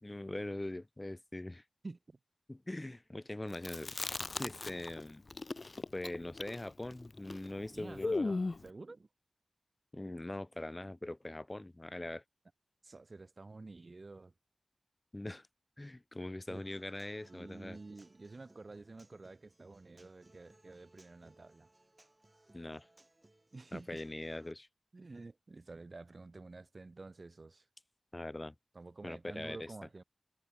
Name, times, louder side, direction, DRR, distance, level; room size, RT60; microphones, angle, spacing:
voice 1, 0.0-1.6 2.5-4.0 4.3-5.2 5.9-8.3 9.9-12.2 15.1-15.5 15.8-17.8 22.5-22.9 23.7-24.7 28.1-28.5 29.0-29.7, left 1 dB, 25° left, 1.8 m, -42 dB
voice 2, 1.8-2.2 7.7-9.1 12.8-14.3 16.5-16.7 17.3-21.7 23.5-24.0 24.9-27.6 28.7-30.0, right 3 dB, 50° right, 4.2 m, -50 dB
Chewing mastication, 3.5-5.0 5.3-8.7, left 3 dB, 50° left, 0.3 m, -37 dB
Human voice / Acoustic guitar, 16.5-24.5, right 2 dB, 30° right, 6.3 m, -66 dB
cardioid pair, 50°, 0 cm